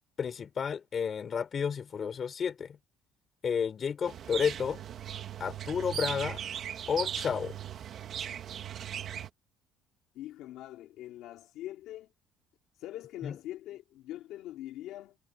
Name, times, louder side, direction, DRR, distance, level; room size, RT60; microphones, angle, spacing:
voice 1, 0.2-2.8 3.4-4.8 5.4-6.4 6.9-7.6 13.2-13.4, left 7 dB, 30° left, 4.1 m, -31 dB
sound 1, 4.1-9.3, right 9 dB, 40° right, 2.0 m, -38 dB
voice 2, 10.1-12.1 12.8-15.2, left 14 dB, 65° left, 2.7 m, -43 dB
cardioid pair, 160°, 0 cm